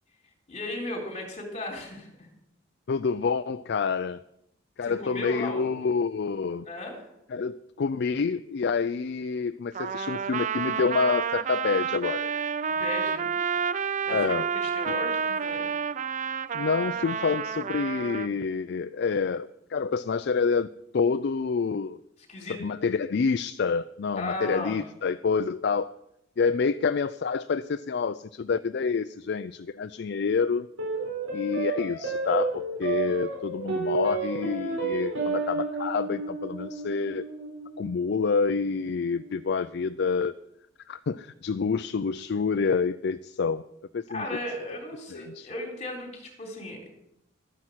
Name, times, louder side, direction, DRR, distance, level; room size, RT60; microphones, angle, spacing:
voice 1, 0.5-2.3 4.8-5.8 6.7-7.0 12.7-13.4 14.1-15.7 22.3-22.8 24.1-24.8 44.1-46.9, left 1 dB, 35° left, 1 dB, 3.7 m, -36 dB
voice 2, 2.9-4.2 4.8-6.7 7.3-12.3 14.1-14.5 14.9-15.0 16.5-20.7 20.9-22.0 22.5-25.9 26.4-30.7 31.3-37.3 37.8-40.3 40.9-43.6 43.9-44.3 44.7-44.8 45.1-45.5, left 5 dB, 55° left, 13 dB, 0.4 m, -27 dB
Trumpet, 9.7-18.3, right 6 dB, 35° right, 0.4 m, -30 dB
sound 1, 30.8-39.4, right 4 dB, 80° right, 5.6 m, -32 dB
13.0 x 9.9 x 6.3 m, 0.81 s
head